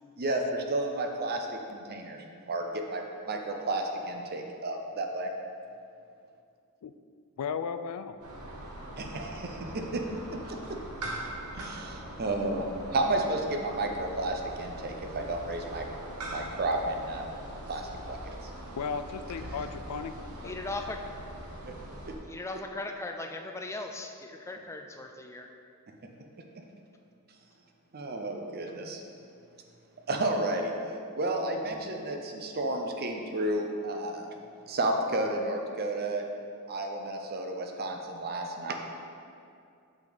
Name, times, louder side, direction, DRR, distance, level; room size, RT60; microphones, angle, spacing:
voice 1, 0.2-5.3 9.0-10.0 10.5-10.8 11.5-12.7 12.9-15.8 16.3-17.3 17.7-17.8 18.1-18.3 19.6-19.7 27.9-29.0 30.1-30.7 31.2-34.3 34.7-36.2 36.7-38.7, right 2 dB, 45° right, 3 dB, 0.7 m, -32 dB
voice 2, 7.4-8.2 18.8-20.1 20.4-20.6, left 6 dB, 85° left, 10 dB, 0.4 m, -35 dB
sound 1, 8.2-22.2, right 1 dB, 85° right, 1.1 m, -42 dB
voice 3, 20.4-21.0 22.3-25.5, left 2 dB, 10° left, 4 dB, 0.4 m, -38 dB
6.5 x 5.9 x 4.0 m, 2.4 s
head